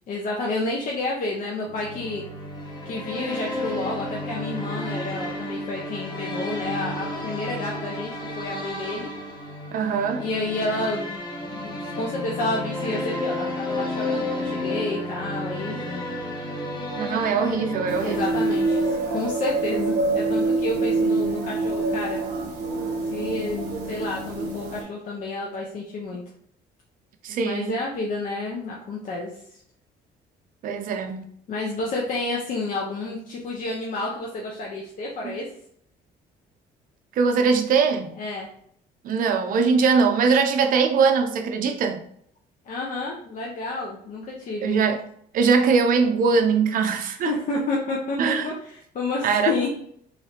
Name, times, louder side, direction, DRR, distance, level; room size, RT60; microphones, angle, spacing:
voice 1, 0.1-2.2 2.8-9.1 10.2-11.1 11.5-16.0 18.0-22.2 23.1-26.2 27.4-29.6 31.5-35.5 38.2-38.5 42.7-44.9 47.1-49.7, left 2 dB, 50° left, 0.6 m, -30 dB
sound 1, 1.7-19.4, left 1 dB, 25° left, 0.9 m, -32 dB
voice 2, 9.7-10.3 17.0-18.4 27.2-27.8 30.6-31.3 35.2-35.4 37.2-38.1 39.0-42.0 44.6-45.0 45.3-47.3 48.2-48.5 49.2-49.5, right 5 dB, 55° right, 0.5 m, -21 dB
sound 2, 17.9-24.8, right 2 dB, 85° right, 0.8 m, -25 dB
3.2 x 2.4 x 2.8 m
cardioid pair, 110°, 17 cm